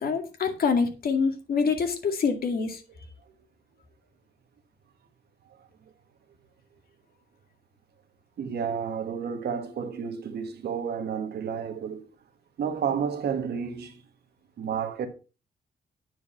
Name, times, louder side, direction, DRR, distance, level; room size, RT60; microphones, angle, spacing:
voice 1, 0.0-2.8, left 5 dB, 65° left, 2.1 m, -26 dB
voice 2, 8.4-12.1 12.6-14.0 14.6-15.1, right 7 dB, 85° right, 1.5 m, -31 dB
9.3 x 4.7 x 5.5 m
cardioid pair, 110°, 16 cm